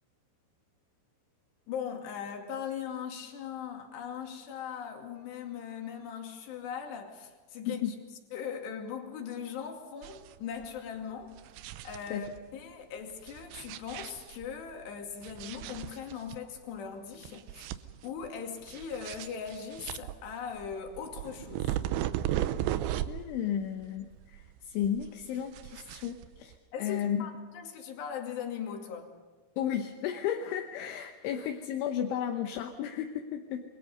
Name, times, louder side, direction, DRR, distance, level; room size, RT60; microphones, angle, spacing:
voice 1, 1.7-7.8 8.3-11.3 11.8-12.3 12.5-17.7 18.0-21.8 26.7-29.1, left 7 dB, 60° left, 2 dB, 4.3 m, -39 dB
sound 1, 10.0-10.4 10.6-10.7 11.2-12.4 13.2-14.6 15.2-16.4 16.8-16.9 17.2-18.3 18.6-23.4 23.6-24.6 24.8-26.5, right 12 dB, 80° right, 2.8 m, -36 dB
voice 2, 23.1-26.5 26.8-27.3 29.6-33.6, left 9 dB, 75° left, 4 dB, 3.3 m, -33 dB
28.5 x 23.0 x 5.4 m, 1.4 s
omnidirectional pair, 5.9 m